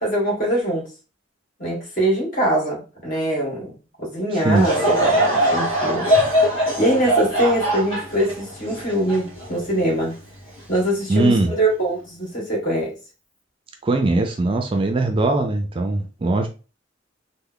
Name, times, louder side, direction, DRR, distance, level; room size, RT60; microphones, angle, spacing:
voice 1, 0.0-0.9 1.6-5.2 5.5-6.1 6.3-10.1 10.7-12.9, right 1 dB, 45° left, 1.6 m, -23 dB
voice 2, 4.3-4.7 11.1-11.5 13.8-16.5, right 2 dB, 25° right, 0.4 m, -20 dB
Laughter / Crowd, 4.5-10.0 10.6-10.7 11.5-11.7, equal, 25° left, 1.6 m, -21 dB
3.3 x 2.0 x 3.6 m
head